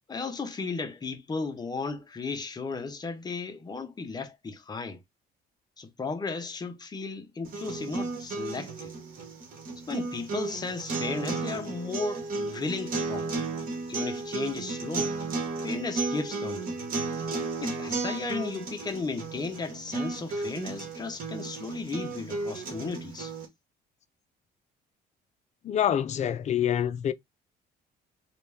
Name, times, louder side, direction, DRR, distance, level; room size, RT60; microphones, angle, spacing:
voice 1, 0.1-5.0 5.8-8.9 9.9-13.5 13.9-15.2 15.6-16.8 17.6-23.3, left 4 dB, 25° left, 1.0 m, -35 dB
sound 1, 7.4-23.5, right 3 dB, 55° right, 1.8 m, -34 dB
voice 2, 25.6-27.1, left 10 dB, 45° left, 0.5 m, -26 dB
3.1 x 3.0 x 3.5 m
cardioid pair, 110°, 17 cm